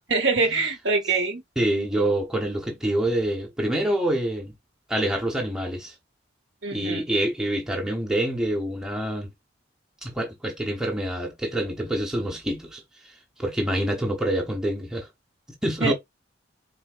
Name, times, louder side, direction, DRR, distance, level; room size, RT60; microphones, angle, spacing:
voice 1, 0.1-1.4 6.6-7.1 15.8-15.9, right 4 dB, 65° right, 1.0 m, -24 dB
voice 2, 1.6-4.5 4.9-5.9 6.7-9.3 10.0-12.8 13.4-15.1 15.6-15.9, right 1 dB, 5° right, 0.8 m, -26 dB
4.0 x 3.8 x 2.4 m
head